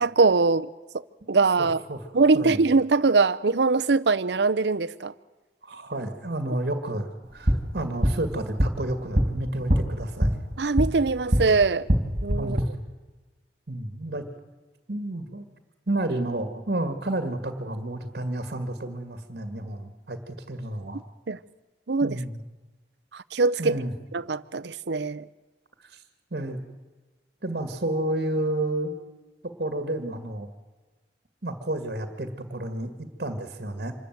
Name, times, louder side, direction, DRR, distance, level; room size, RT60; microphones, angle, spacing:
voice 1, 0.0-0.7 1.3-1.8 2.1-5.1 10.6-11.9 12.2-12.6 21.3-21.4 21.9-22.2 23.1-23.8 24.1-25.3, right 4 dB, 75° right, 15 dB, 0.7 m, -22 dB
voice 2, 1.6-2.0 2.3-2.6 5.6-10.4 12.4-12.6 13.7-14.2 14.9-15.5 15.9-21.0 22.0-22.4 23.6-23.9 25.8-26.0 26.3-26.6 27.4-28.9 29.4-30.5 31.4-33.9, right 1 dB, 60° right, 9 dB, 1.9 m, -31 dB
sound 1, 7.2-11.5 11.8-12.6, equal, 40° right, 3.1 m, -25 dB
26.0 x 13.5 x 9.3 m, 1.3 s
head